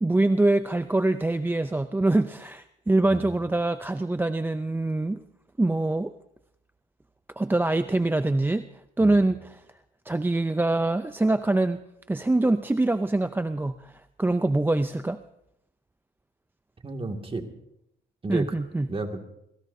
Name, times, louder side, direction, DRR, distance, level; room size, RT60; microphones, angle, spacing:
voice 1, 0.0-5.2 5.6-6.1 7.4-8.7 9.0-9.6 10.1-11.8 12.1-13.9 14.2-15.2 18.3-18.9, right 2 dB, 10° right, 10 dB, 0.5 m, -24 dB
voice 2, 3.1-3.4 9.0-9.3 16.8-17.5 18.2-18.5 18.9-19.2, right 3 dB, 30° right, 4 dB, 2.2 m, -32 dB
29.5 x 17.0 x 2.7 m, 0.79 s
cardioid pair, 90°, 20 cm